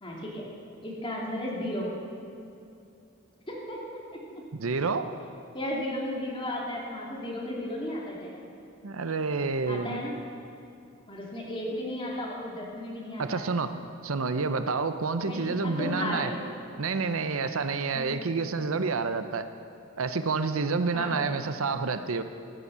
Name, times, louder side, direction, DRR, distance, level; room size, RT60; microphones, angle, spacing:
voice 1, 0.0-0.4 0.8-1.9 3.5-3.8 5.5-8.3 9.7-10.1 11.1-13.4 15.2-16.4 17.9-18.2 20.9-21.4, left 1 dB, 25° left, -4 dB, 2.7 m, -34 dB
voice 2, 4.5-5.1 8.8-10.0 13.2-13.7 14.0-16.3 16.8-19.5 20.0-22.2, right 4 dB, 75° right, 10 dB, 0.7 m, -28 dB
16.5 x 10.0 x 6.9 m, 2.6 s
head